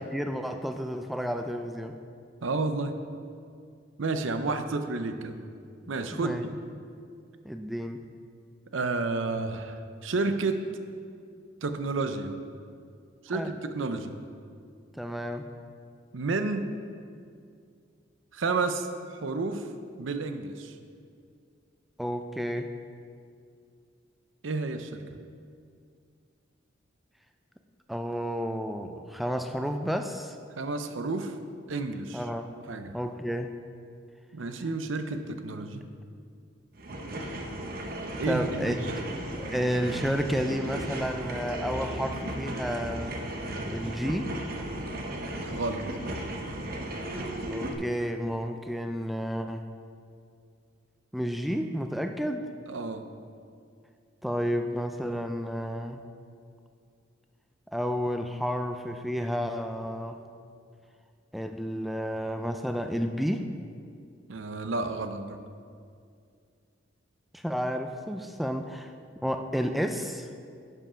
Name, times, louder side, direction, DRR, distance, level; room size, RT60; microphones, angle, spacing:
voice 1, 0.0-2.0 4.5-4.6 6.2-6.5 7.4-8.0 13.3-13.6 14.9-15.4 22.0-22.7 27.9-30.4 32.1-32.5 32.9-33.6 37.9-38.9 39.4-43.2 43.7-44.3 47.5-49.6 51.1-52.4 54.2-56.0 57.7-60.2 61.3-63.5 67.3-68.9 69.2-70.3, equal, ahead, 6 dB, 0.3 m, -31 dB
voice 2, 2.4-3.0 4.0-5.4 5.9-6.4 8.7-10.7 11.6-12.4 13.2-14.2 16.1-16.7 18.3-19.7 20.0-20.8 24.4-25.0 30.6-31.4 31.7-32.2 32.7-32.9 34.3-35.9 38.2-39.3 45.4-45.8 52.7-53.0 64.3-65.4, right 3 dB, 75° right, 8 dB, 0.6 m, -31 dB
sound 1, 36.7-47.7, right 1 dB, 50° right, 0.9 m, -35 dB
11.0 x 5.5 x 5.0 m, 2.3 s
head